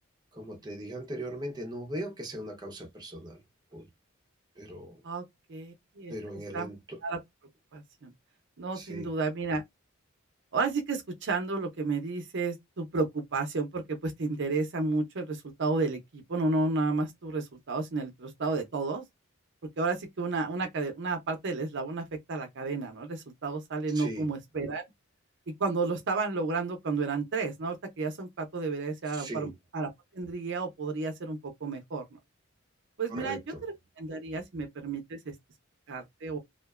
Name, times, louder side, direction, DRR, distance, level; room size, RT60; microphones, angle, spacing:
voice 1, 0.3-3.4 3.7-3.9 4.6-5.0 6.1-7.0 8.7-9.1 23.9-24.3 29.1-29.5 33.1-33.6, right 1 dB, 20° right, 0.7 m, -39 dB
voice 2, 5.5-6.1 6.5-6.7 7.0-7.2 7.7-8.1 8.6-9.6 10.5-19.0 19.8-24.8 25.5-32.2 33.0-35.3 35.9-36.4, right 3 dB, 60° right, 0.6 m, -32 dB
2.4 x 2.1 x 2.3 m
head